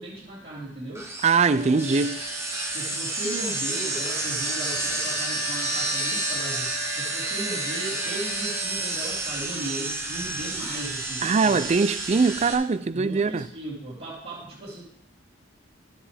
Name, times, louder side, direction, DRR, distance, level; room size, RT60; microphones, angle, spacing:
voice 1, 0.0-1.1 2.7-11.6 12.9-14.8, right 2 dB, 55° right, 3.0 m, -36 dB
sound 1, 1.0-12.5, right 2 dB, 15° right, 1.1 m, -30 dB
voice 2, 1.2-2.2 11.2-13.5, right 4 dB, 35° right, 0.4 m, -22 dB
Wind instrument woodwind instrument, 1.5-9.1, left 5 dB, 70° left, 2.0 m, -40 dB
12.0 x 7.3 x 3.4 m
head